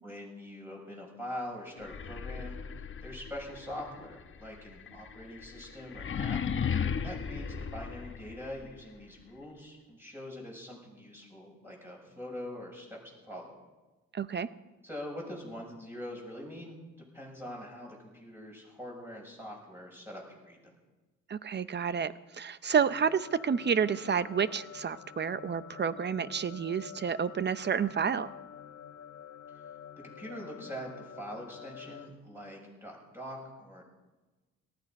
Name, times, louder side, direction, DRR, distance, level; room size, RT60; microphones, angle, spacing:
voice 1, 0.0-6.4 7.0-13.5 14.8-20.6 30.0-33.9, equal, 5° right, -2 dB, 6.8 m, -43 dB
sound 1, 1.8-8.7, left 7 dB, 40° left, 1.1 m, -36 dB
voice 2, 14.1-14.5 21.3-28.4, right 7 dB, 35° right, 15 dB, 0.7 m, -30 dB
sound 2, 22.7-32.1, left 8 dB, 60° left, 1.3 m, -48 dB
18.5 x 14.5 x 5.4 m, 1.2 s
cardioid pair, 90°, 30 cm